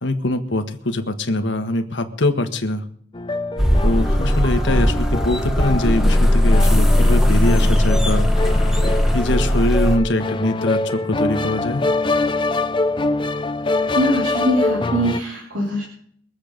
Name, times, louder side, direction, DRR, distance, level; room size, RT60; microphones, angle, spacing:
voice 1, 0.0-2.8 3.8-8.3 9.1-11.8, left 1 dB, 65° left, 6 dB, 1.5 m, -22 dB
sound 1, 3.1-15.2, left 2 dB, 25° left, 0.6 m, -25 dB
sound 2, 3.6-10.0, left 1 dB, 5° right, 1.2 m, -17 dB
voice 2, 13.9-15.8, equal, 80° right, -2 dB, 3.1 m, -22 dB
22.5 x 8.0 x 5.2 m, 0.64 s
head